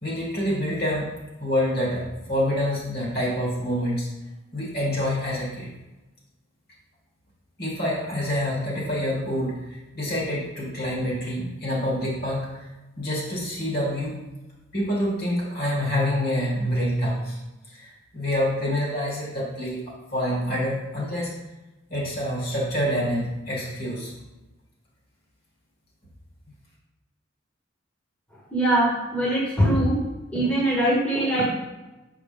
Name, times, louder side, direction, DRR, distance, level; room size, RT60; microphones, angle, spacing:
voice 1, 0.0-1.1 1.4-4.1 4.5-5.7 7.6-12.7 13.0-14.2 14.7-17.4 17.6-19.8 20.1-21.3 21.9-24.1, equal, 50° left, -5 dB, 2.1 m, -27 dB
voice 2, 28.5-30.0 30.3-31.4, right 1 dB, 5° left, -7 dB, 1.3 m, -22 dB
6.4 x 5.0 x 3.4 m, 1.1 s
head